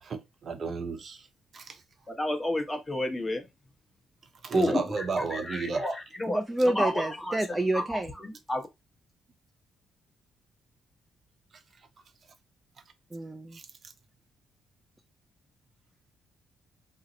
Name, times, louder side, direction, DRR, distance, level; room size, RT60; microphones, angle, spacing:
voice 1, 0.0-1.3 1.5-1.7 4.4-5.9 13.5-13.6, right 5 dB, 50° right, 0.7 m, -33 dB
voice 2, 2.2-3.4 4.5-7.4 7.7-8.6, left 1 dB, 15° left, 1.0 m, -31 dB
voice 3, 6.3-8.1 13.1-13.6, right 1 dB, 15° right, 0.4 m, -28 dB
2.8 x 2.0 x 3.8 m
cardioid pair, 90°, 0 cm